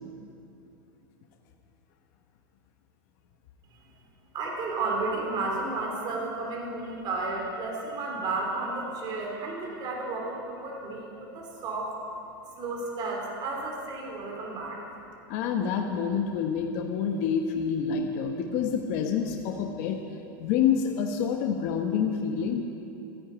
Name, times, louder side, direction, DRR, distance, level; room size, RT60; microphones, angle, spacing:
voice 1, 4.3-11.9 12.6-15.0, right 3 dB, 40° right, -1 dB, 3.5 m, -32 dB
voice 2, 15.3-20.0 20.4-22.6, left 7 dB, 55° left, 3 dB, 1.2 m, -27 dB
14.0 x 10.5 x 8.8 m, 2.9 s
supercardioid pair, 125°, 11 cm